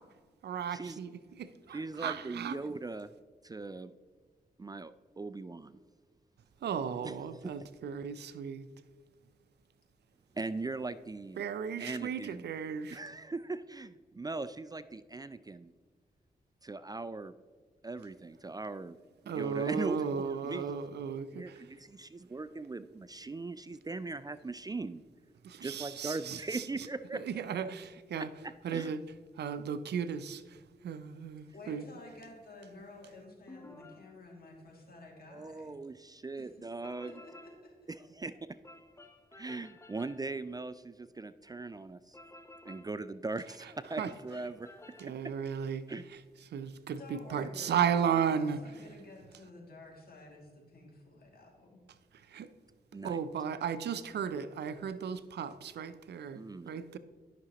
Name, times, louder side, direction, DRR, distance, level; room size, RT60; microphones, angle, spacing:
voice 1, 0.4-1.1 1.4-2.6 6.6-8.7 11.4-13.0 19.3-21.6 25.4-26.6 27.1-28.3 28.6-29.0 29.4-30.6 30.8-31.8 44.0-44.1 45.0-45.8 46.5-48.6 52.3-52.5 53.0-57.0, right 7 dB, 85° right, 12 dB, 0.5 m, -35 dB
voice 2, 1.7-3.1 3.4-3.9 4.6-4.9 5.2-5.8 7.0-7.6 10.3-11.4 11.8-12.5 12.9-15.7 16.6-17.3 17.8-19.0 19.2-20.8 21.4-25.0 25.6-27.2 28.2-28.9 35.3-37.2 37.9-38.3 39.3-42.2 42.6-45.3 45.9-46.0 52.9-53.2 56.3-56.8, right 3 dB, 25° right, 13 dB, 0.3 m, -40 dB
voice 3, 31.5-35.8 36.4-36.5 37.0-37.9 47.0-51.8, left 2 dB, 65° left, -1 dB, 2.3 m, -51 dB
sound 1, 33.5-34.1 36.8-37.7 38.6-40.3 42.1-43.0 44.0-45.1, left 2 dB, 15° left, 0.7 m, -53 dB
12.5 x 6.0 x 2.9 m, 1.5 s
cardioid pair, 60°, 17 cm